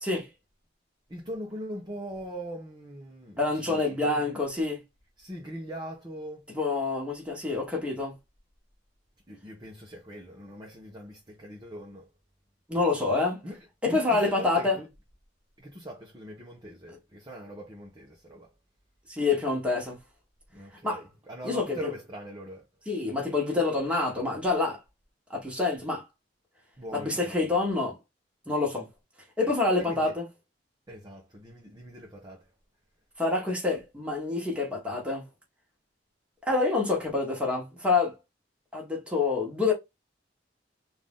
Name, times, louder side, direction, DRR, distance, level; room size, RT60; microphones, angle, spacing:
voice 1, 1.1-4.4 5.2-6.5 9.3-12.1 13.4-14.9 15.6-18.5 20.5-22.7 26.8-27.6 29.8-30.1 30.9-32.5, equal, 20° right, 0.9 m, -41 dB
voice 2, 3.4-4.8 6.5-8.1 12.7-13.4 13.8-14.8 19.1-20.0 20.8-21.0 21.4-21.9 22.9-24.8 25.3-26.0 26.9-28.0 28.5-28.9 29.4-30.3 33.2-35.2 36.4-38.1 38.7-39.7, left 3 dB, 5° right, 1.5 m, -27 dB
3.9 x 2.6 x 3.6 m
head